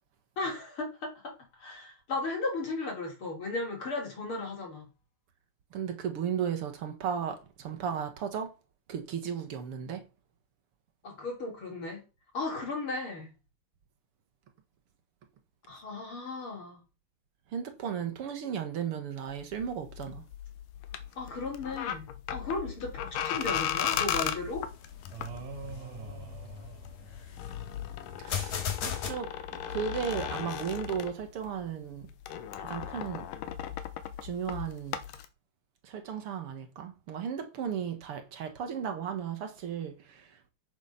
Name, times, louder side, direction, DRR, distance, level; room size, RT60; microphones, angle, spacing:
voice 1, 0.4-1.3 1.6-4.9 11.0-12.0 12.3-13.3 15.7-16.8 21.2-24.6, left 3 dB, 40° left, 4.0 m, -35 dB
voice 2, 5.7-8.5 8.9-10.0 17.5-20.2 28.2-28.6 28.8-29.3 29.7-32.1 32.5-33.3 34.2-35.0 35.8-40.5, right 8 dB, 55° right, 2.0 m, -35 dB
sound 1, 19.3-31.7 31.9-35.3, left 10 dB, 85° left, 2.6 m, -37 dB
sound 2, 23.4-29.1, left 8 dB, 65° left, 3.0 m, -39 dB
sound 3, 25.1-27.6, right 5 dB, 80° right, 3.1 m, -44 dB
9.0 x 7.1 x 5.8 m
omnidirectional pair, 3.7 m